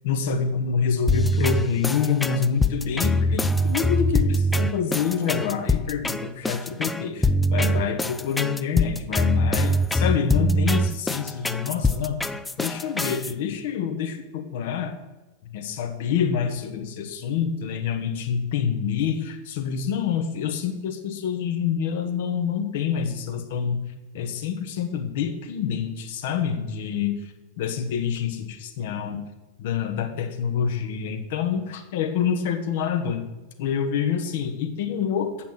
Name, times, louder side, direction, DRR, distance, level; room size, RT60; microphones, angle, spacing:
voice 1, 0.0-12.2 12.6-14.9 15.5-23.8 24.1-27.1 27.6-29.2 29.6-33.2 33.6-35.3, left 7 dB, 55° left, 6 dB, 1.1 m, -27 dB
sound 1, 1.1-13.3, left 1 dB, 10° left, 0.4 m, -23 dB
7.9 x 5.9 x 6.6 m, 1.1 s
figure-of-eight pair, 90°, 0 cm